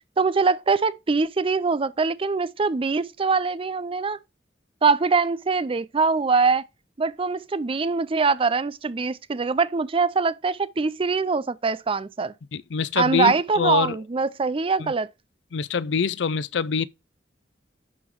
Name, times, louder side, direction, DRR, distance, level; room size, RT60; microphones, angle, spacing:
voice 1, 0.2-4.2 4.8-6.6 7.0-12.3 13.0-15.1, right 4 dB, 30° right, 0.5 m, -23 dB
voice 2, 12.5-14.0 14.8-14.9 15.5-16.9, left 6 dB, 75° left, 0.5 m, -25 dB
11.0 x 3.8 x 4.7 m
head